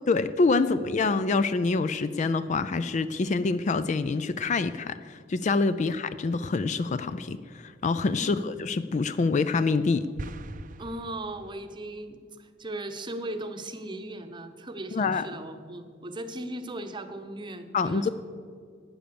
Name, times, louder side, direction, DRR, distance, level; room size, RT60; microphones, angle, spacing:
voice 1, 0.1-10.1 14.9-15.3 17.7-18.1, left 4 dB, 40° left, 13 dB, 0.4 m, -26 dB
sound 1, 10.2-11.8, right 2 dB, 45° right, 0.5 m, -41 dB
voice 2, 10.8-18.1, right 1 dB, 25° right, 7 dB, 0.9 m, -38 dB
12.0 x 8.9 x 6.9 m, 2.1 s
head